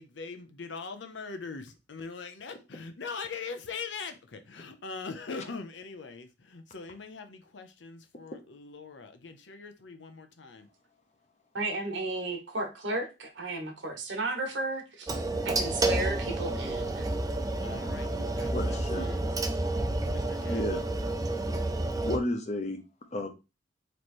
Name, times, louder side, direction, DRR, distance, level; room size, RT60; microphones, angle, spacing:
voice 1, 0.0-10.7 17.6-19.3 19.9-20.8, left 4 dB, 70° left, 0.7 m, -42 dB
voice 2, 11.5-17.1, right 2 dB, 70° right, 1.2 m, -34 dB
sound 1, 15.1-22.2, right 2 dB, 20° right, 0.5 m, -30 dB
voice 3, 18.5-19.1 20.5-20.8 22.0-22.8 23.1-23.3, left 1 dB, 40° left, 0.8 m, -32 dB
3.2 x 3.1 x 4.3 m
head